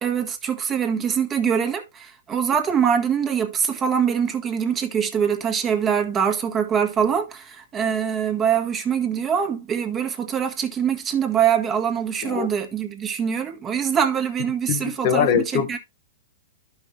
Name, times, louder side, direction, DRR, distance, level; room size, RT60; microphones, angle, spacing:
voice 1, 0.0-15.8, right 8 dB, 20° right, 1.6 m, -23 dB
voice 2, 14.7-15.8, left 8 dB, 45° left, 1.0 m, -22 dB
11.5 x 5.6 x 3.3 m
hypercardioid pair, 130°, 0 cm